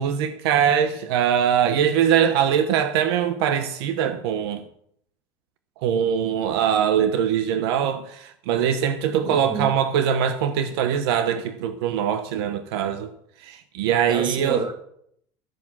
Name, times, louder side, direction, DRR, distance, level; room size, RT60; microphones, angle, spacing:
voice 1, 0.0-4.6 5.8-13.1 13.4-14.6, right 8 dB, 85° right, 0.9 m, -22 dB
voice 2, 9.2-9.7 14.1-14.7, right 4 dB, 35° right, 2.2 m, -29 dB
13.5 x 6.0 x 7.4 m
supercardioid pair, 105°, 13 cm